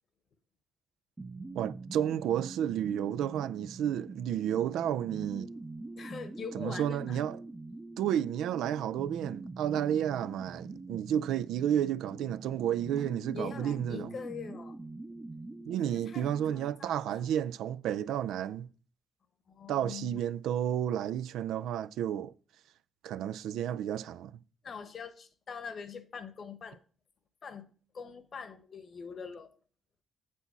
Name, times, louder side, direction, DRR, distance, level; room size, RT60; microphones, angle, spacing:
sound 1, 1.2-16.7, right 3 dB, 20° right, 0.6 m, -44 dB
voice 1, 1.5-5.5 6.5-7.4 8.0-14.1 15.7-18.7 19.7-22.3 23.0-24.4, right 10 dB, 85° right, 0.3 m, -31 dB
voice 2, 6.0-7.2 13.0-13.1 13.3-14.8 15.8-17.3 19.5-20.2 24.6-26.8 27.4-27.7 27.9-29.5, left 6 dB, 50° left, 1.0 m, -43 dB
8.2 x 4.1 x 7.1 m
cardioid pair, 90°, 0 cm